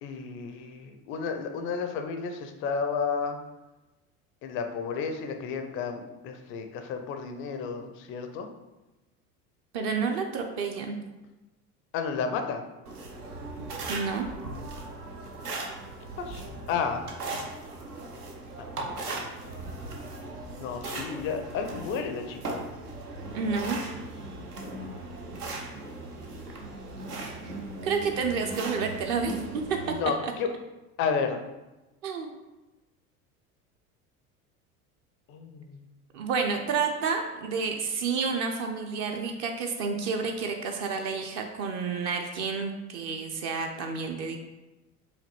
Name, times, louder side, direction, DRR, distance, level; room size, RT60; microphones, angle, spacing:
voice 1, 0.0-3.4 4.4-8.5 11.9-12.7 16.2-16.4 16.7-17.1 18.8-19.3 19.7-20.1 20.6-22.6 29.9-30.5 31.0-31.4 35.3-35.8, left 5 dB, 30° left, 6 dB, 0.4 m, -32 dB
voice 2, 9.7-11.0 13.9-14.3 23.3-23.8 27.8-29.8 30.2-30.3 32.0-32.3 36.1-44.4, right 5 dB, 35° right, 4 dB, 0.5 m, -30 dB
sound 1, 12.9-30.0, right 2 dB, 80° right, 0.7 m, -38 dB
4.9 x 2.6 x 3.0 m, 1.1 s
figure-of-eight pair, 70°, 45 cm